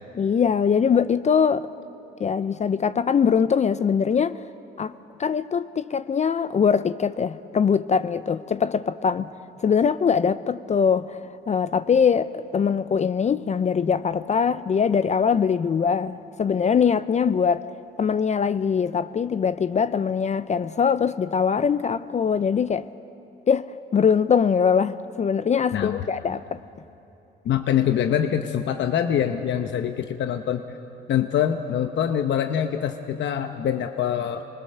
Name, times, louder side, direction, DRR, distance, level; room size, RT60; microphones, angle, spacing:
voice 1, 0.2-1.7 2.2-4.4 4.8-4.9 5.2-9.3 9.6-11.2 11.5-17.7 18.0-22.9 23.5-26.6, left 6 dB, 35° left, 0.5 m, -22 dB
voice 2, 25.7-26.1 27.4-30.6 31.1-34.4, left 9 dB, 65° left, 0.9 m, -24 dB
27.0 x 20.0 x 6.6 m
cardioid pair, 90°, 20 cm